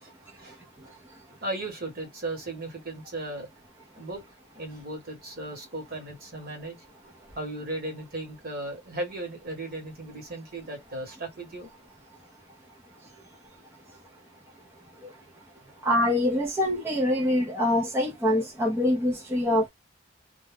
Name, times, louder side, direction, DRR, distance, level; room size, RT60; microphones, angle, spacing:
voice 1, 1.4-3.5 4.0-4.2 4.5-6.8 7.3-11.7, right 2 dB, 45° right, 1.2 m, -36 dB
voice 2, 15.9-19.7, left 1 dB, 10° right, 0.6 m, -24 dB
2.3 x 2.1 x 3.2 m
head